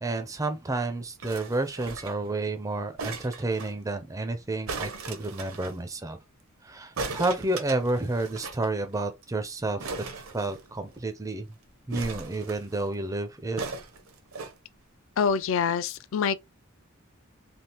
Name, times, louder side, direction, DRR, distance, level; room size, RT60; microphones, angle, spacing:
voice 1, 0.0-6.2 6.6-10.1 10.3-11.5 11.9-13.6, right 2 dB, 15° right, 0.4 m, -30 dB
sound 1, 1.2-2.3 3.0-3.7 4.7-5.8 7.0-8.7 8.9-9.0 9.2-9.4 9.8-11.0 11.9-12.8 13.6-14.5 15.3-15.4, right 4 dB, 80° right, 0.8 m, -38 dB
voice 2, 15.2-16.4, left 6 dB, 65° left, 0.4 m, -25 dB
3.4 x 2.4 x 2.8 m
head